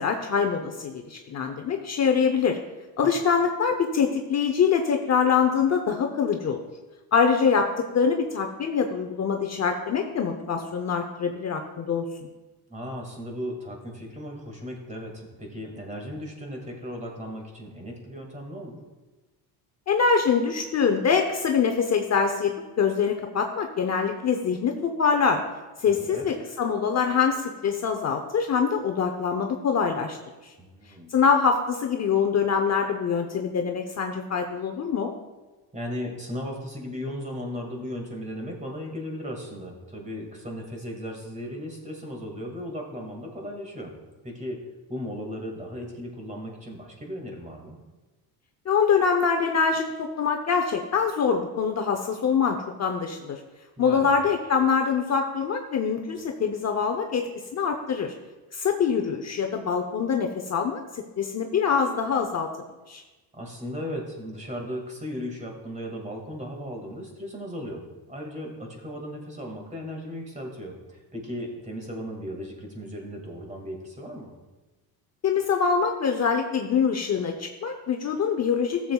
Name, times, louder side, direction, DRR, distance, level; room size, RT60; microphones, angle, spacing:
voice 1, 0.0-2.6 3.0-6.6 7.1-12.0 19.9-25.4 25.8-30.2 31.1-35.1 48.7-53.4 53.8-58.1 58.5-62.5 62.9-63.0 75.2-78.9, left 6 dB, 40° left, 4 dB, 0.7 m, -24 dB
voice 2, 12.7-18.8 25.9-26.3 30.6-31.2 35.7-43.9 44.2-44.6 44.9-47.8 53.8-54.1 63.3-74.3, equal, 15° right, 1 dB, 2.0 m, -36 dB
14.0 x 7.3 x 2.3 m, 1.2 s
cardioid pair, 110°, 43 cm